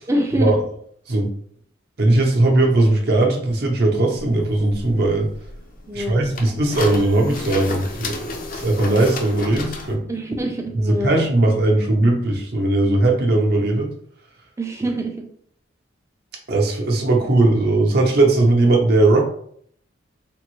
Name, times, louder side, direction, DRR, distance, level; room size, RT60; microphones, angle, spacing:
voice 1, 0.1-0.6 5.9-6.2 10.1-11.2 14.6-15.3, right 1 dB, 15° right, 2 dB, 0.4 m, -25 dB
voice 2, 2.0-5.3 5.9-10.0 10.7-13.9 16.5-19.2, right 2 dB, 50° right, 0 dB, 0.7 m, -18 dB
sound 1, 4.2-10.0, left 2 dB, 45° left, 0.4 m, -32 dB
3.4 x 2.0 x 3.0 m, 0.63 s
head